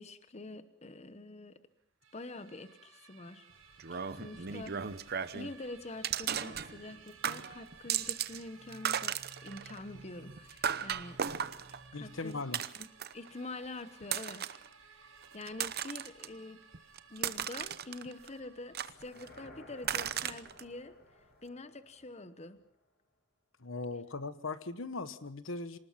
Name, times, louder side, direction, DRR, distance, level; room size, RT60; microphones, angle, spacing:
voice 1, 0.0-1.6 2.1-3.5 3.9-4.9 5.3-9.2 9.4-11.2 11.7-12.4 12.8-12.9 13.1-16.6 17.1-22.6, left 2 dB, 30° left, 12 dB, 0.9 m, -46 dB
sound 1, 2.0-18.8, right 6 dB, 70° right, 5.9 m, -58 dB
sound 2, 3.8-5.5 6.0-7.0 7.2-8.4 8.7-13.3 14.0-14.7 15.2-16.3 16.7-18.3 18.7-19.4 19.8-20.6, right 8 dB, 50° right, 0.8 m, -36 dB
voice 2, 11.9-12.6 23.6-25.8, left 3 dB, 70° left, 13 dB, 1.2 m, -39 dB
sound 3, 18.7-22.8, left 1 dB, 50° left, 6.5 m, -58 dB
26.0 x 19.0 x 5.8 m, 0.68 s
head